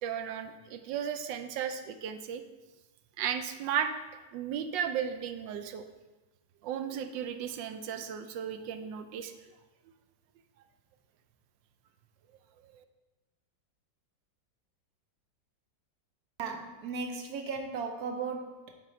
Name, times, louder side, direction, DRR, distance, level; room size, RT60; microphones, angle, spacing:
voice 1, 0.0-2.4 3.2-3.9 4.3-5.8 6.6-9.3 12.6-12.8, right 8 dB, 85° right, 8 dB, 1.3 m, -35 dB
voice 2, 16.4-18.7, right 4 dB, 65° right, 4 dB, 1.1 m, -36 dB
7.7 x 4.2 x 4.3 m, 1.1 s
omnidirectional pair, 1.9 m